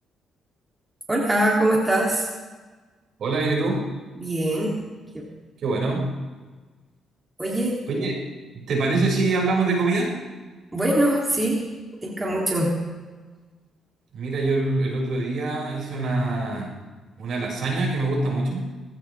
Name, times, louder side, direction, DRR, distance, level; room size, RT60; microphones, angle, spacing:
voice 1, 1.1-2.3 4.2-4.8 5.1-5.3 7.4-7.8 10.7-11.7 12.0-12.7, right 1 dB, 15° right, -3 dB, 3.3 m, -22 dB
voice 2, 3.2-3.8 5.6-6.1 7.9-8.2 8.5-10.1 14.1-16.8 17.2-18.7, right 3 dB, 65° right, -2 dB, 6.7 m, -24 dB
20.5 x 16.5 x 3.7 m, 1.3 s
cardioid pair, 90°, 0 cm